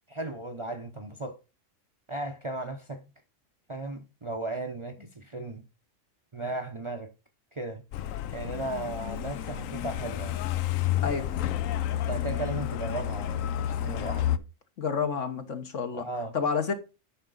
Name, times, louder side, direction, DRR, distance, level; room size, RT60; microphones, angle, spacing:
voice 1, 0.1-1.4 2.1-3.0 3.7-5.6 6.3-7.1 7.5-7.8 8.3-10.5 11.9-14.5 15.9-16.4, right 2 dB, 30° right, 0.6 m, -36 dB
Truck, 7.9-14.4, left 11 dB, 85° left, 1.0 m, -30 dB
voice 2, 14.8-16.0 16.3-16.7, left 6 dB, 70° left, 1.6 m, -29 dB
9.9 x 5.8 x 3.9 m
omnidirectional pair, 1.3 m